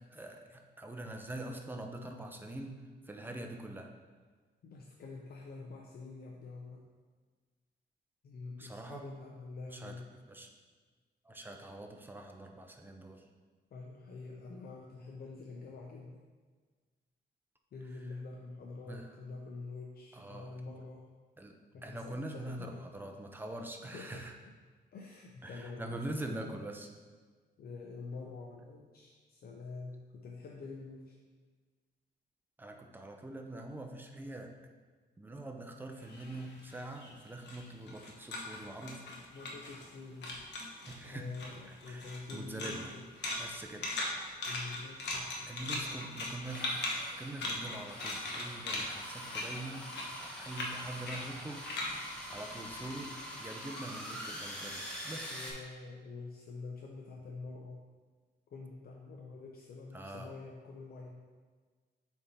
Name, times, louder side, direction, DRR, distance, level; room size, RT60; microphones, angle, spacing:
voice 1, 0.1-3.9 8.6-9.0 9.7-10.5 11.2-13.3 18.8-19.2 20.1-20.5 21.4-21.5 21.8-24.3 25.4-26.9 32.6-34.5 35.2-39.0 40.9-41.3 41.6-42.9 43.4-43.9 45.5-46.8 47.2-49.9 50.2-51.7 52.3-55.4 59.9-60.3, right 1 dB, 10° right, 3 dB, 0.6 m, -44 dB
voice 2, 4.6-6.8 8.2-10.0 13.7-16.2 17.7-21.0 21.7-22.9 23.9-24.2 24.9-26.4 27.6-31.2 39.3-40.3 41.0-43.1 44.4-46.1 54.6-54.8 55.3-57.8 58.5-61.2, left 3 dB, 60° left, -1 dB, 0.6 m, -46 dB
sound 1, 36.0-40.0 40.2-41.0 41.3-53.2, left 2 dB, 80° left, 1.0 m, -40 dB
sound 2, 44.2-44.3 44.7-44.8 46.4-55.5, equal, 5° left, 1.3 m, -45 dB
6.9 x 3.5 x 4.1 m, 1.4 s
cardioid pair, 125°, 18 cm